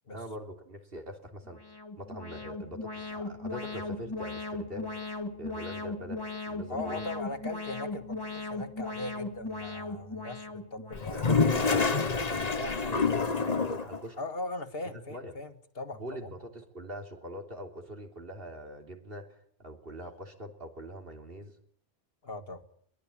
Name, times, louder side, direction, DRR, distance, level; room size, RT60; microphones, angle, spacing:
voice 1, 0.1-1.6 2.0-4.9 5.4-7.1 11.1-14.2 14.9-15.3 15.9-19.3 19.6-21.6, equal, 60° right, 4 dB, 3.7 m, -43 dB
Alarm, 1.5-11.4, left 3 dB, 20° left, 2.5 m, -38 dB
voice 2, 6.7-11.3 14.2-16.3 22.2-22.6, left 2 dB, 60° left, 9 dB, 2.0 m, -39 dB
Toilet flush, 10.9-14.0, left 4 dB, 40° left, 1.2 m, -27 dB
22.5 x 20.0 x 8.7 m, 0.64 s
omnidirectional pair, 1.1 m